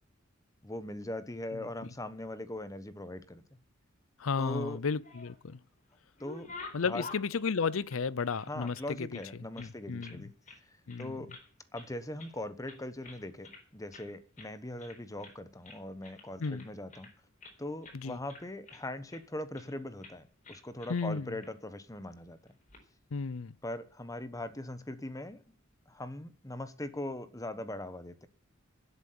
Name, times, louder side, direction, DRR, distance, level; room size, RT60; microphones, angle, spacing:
voice 1, 0.6-3.4 4.4-4.8 6.2-6.5 6.8-7.1 8.5-10.3 10.7-11.3 11.7-17.1 17.6-22.4 23.6-25.4 25.9-28.3, left 1 dB, 15° left, 1.1 m, -40 dB
voice 2, 4.2-5.6 6.7-9.1 9.6-10.2 10.9-11.2 16.4-16.7 17.9-18.2 20.9-21.3 23.1-23.5, left 5 dB, 85° left, 0.6 m, -33 dB
sound 1, 4.7-5.6 5.9-8.9 9.1-10.2 10.5-10.6 10.9-11.5 11.7-12.4 12.7-13.6 13.9-14.1 14.4-14.5 14.8-15.4 15.6-17.6 17.8-18.0 18.3-19.2 19.5-19.7 20.0-20.2 20.4-21.1 21.4-21.5 22.5-22.8, left 3 dB, 40° left, 4.1 m, -50 dB
11.0 x 8.2 x 9.5 m
head